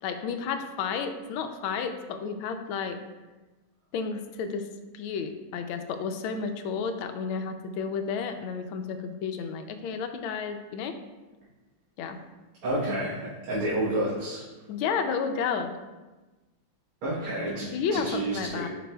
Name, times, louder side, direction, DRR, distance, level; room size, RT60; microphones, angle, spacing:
voice 1, 0.0-3.0 3.9-10.9 12.0-12.2 14.7-15.8 17.6-18.7, left 6 dB, 85° left, 7 dB, 1.4 m, -32 dB
voice 2, 12.6-14.4 17.0-18.7, right 1 dB, 85° right, -8 dB, 2.1 m, -30 dB
9.1 x 4.7 x 2.2 m, 1.2 s
omnidirectional pair, 2.3 m